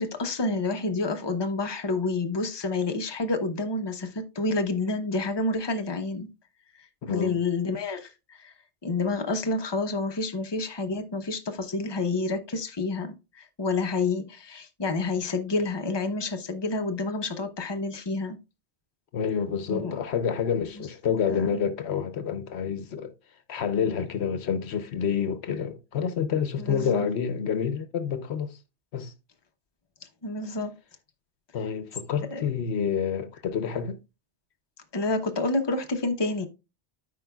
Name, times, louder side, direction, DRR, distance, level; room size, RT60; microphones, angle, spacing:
voice 1, 0.0-6.3 7.0-8.5 8.8-18.4 19.7-19.9 20.8-20.9 21.3-21.5 26.6-27.1 30.2-30.7 32.3-32.4 34.9-36.5, left 3 dB, 25° left, 0.9 m, -29 dB
voice 2, 7.0-7.4 19.1-23.1 23.5-28.6 28.9-29.1 31.5-34.0, left 7 dB, 70° left, 1.0 m, -28 dB
13.5 x 5.0 x 2.3 m
omnidirectional pair, 1.2 m